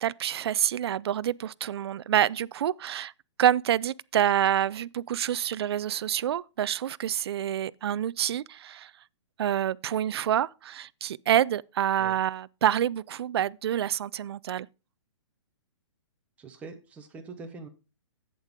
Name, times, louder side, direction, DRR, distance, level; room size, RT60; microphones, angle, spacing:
voice 1, 0.0-3.1 3.4-8.9 9.4-14.7, right 10 dB, 55° right, 0.4 m, -27 dB
voice 2, 16.4-17.7, right 4 dB, 10° right, 0.9 m, -43 dB
11.0 x 8.1 x 3.6 m
hypercardioid pair, 170°, 16 cm